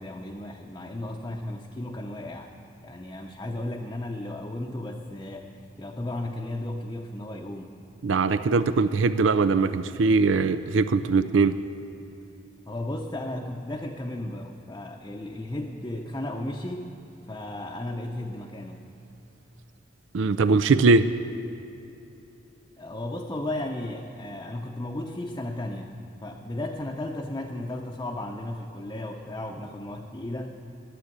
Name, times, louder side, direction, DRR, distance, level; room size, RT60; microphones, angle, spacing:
voice 1, 0.0-2.5 2.8-5.5 5.8-7.8 12.7-17.0 17.3-18.9 22.8-30.6, left 1 dB, 20° left, -1 dB, 0.7 m, -34 dB
voice 2, 8.0-11.5 20.1-21.1, right 4 dB, 85° right, 12 dB, 0.5 m, -21 dB
12.5 x 7.9 x 9.8 m, 3.0 s
head